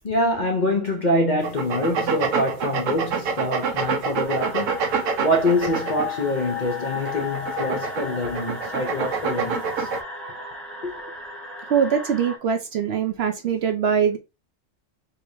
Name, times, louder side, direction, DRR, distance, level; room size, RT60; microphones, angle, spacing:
voice 1, 0.0-4.9 5.2-9.9 10.8-10.9, left 1 dB, 45° left, 0.7 m, -25 dB
sound 1, 1.4-6.3 6.9-10.0, right 5 dB, 85° right, 1.1 m, -26 dB
sound 2, 4.2-12.4, left 4 dB, ahead, 0.7 m, -35 dB
voice 2, 11.7-14.2, right 7 dB, 65° right, 0.7 m, -22 dB
4.7 x 2.8 x 2.6 m
omnidirectional pair, 1.3 m